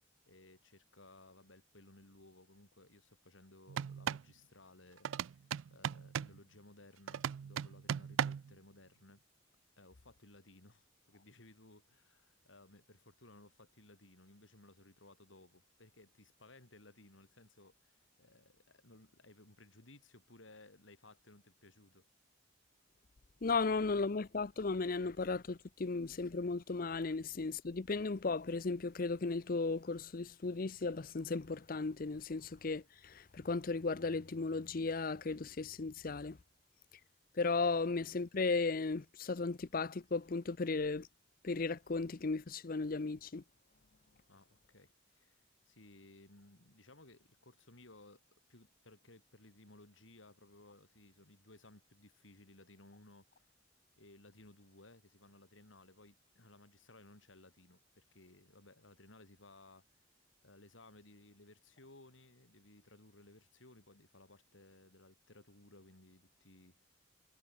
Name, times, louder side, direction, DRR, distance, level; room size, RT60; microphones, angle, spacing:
voice 1, 0.3-9.2 9.8-22.1 44.3-48.2 48.5-53.5 54.0-60.0 60.4-66.9, left 2 dB, 85° left, 3.8 m, -60 dB
sound 1, 3.7-4.3 5.0-6.4 7.1-8.5, right 8 dB, 85° right, 0.4 m, -37 dB
voice 2, 23.4-36.4 37.3-41.1 41.4-43.4, left 3 dB, 45° left, 0.6 m, -36 dB
head